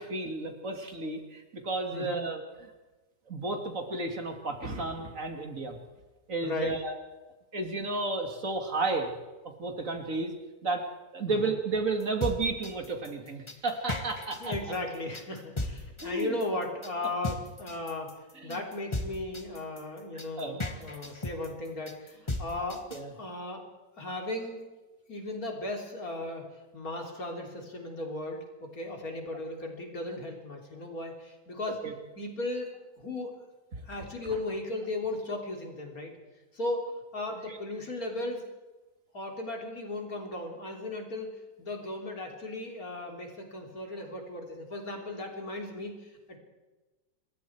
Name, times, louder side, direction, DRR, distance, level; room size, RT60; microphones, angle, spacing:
voice 1, 0.0-2.4 3.3-5.8 6.3-6.9 7.5-9.1 9.6-10.3 10.6-14.5 16.0-16.4 18.4-18.6 20.4-20.6 22.9-23.1 31.8-31.9 37.5-37.6, right 3 dB, 50° right, 4 dB, 2.9 m, -32 dB
voice 2, 1.9-2.2 6.4-6.7 11.3-11.5 14.4-22.8 23.2-23.6 24.0-24.7 25.1-26.5 26.7-31.8 32.2-33.3 33.9-36.1 36.5-38.4 39.1-46.4, left 2 dB, 55° left, 2 dB, 4.0 m, -36 dB
sound 1, 12.0-23.0, left 2 dB, 15° left, 1.5 m, -36 dB
27.0 x 21.5 x 4.7 m, 1.2 s
omnidirectional pair, 1.8 m